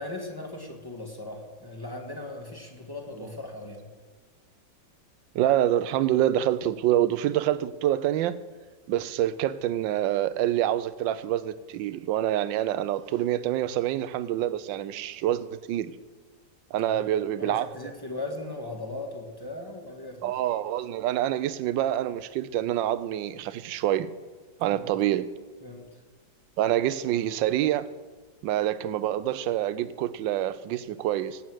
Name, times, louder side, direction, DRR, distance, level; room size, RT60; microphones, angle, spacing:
voice 1, 0.0-3.9 16.8-17.0 17.4-20.3 24.7-24.9 25.6-26.0, left 2 dB, 10° left, 1.7 m, -38 dB
voice 2, 5.3-8.4 8.9-15.9 16.7-17.7 20.2-24.1 24.6-25.3 26.6-27.9 28.4-31.4, right 12 dB, 75° right, 1.3 m, -26 dB
17.0 x 8.5 x 6.2 m
omnidirectional pair, 2.1 m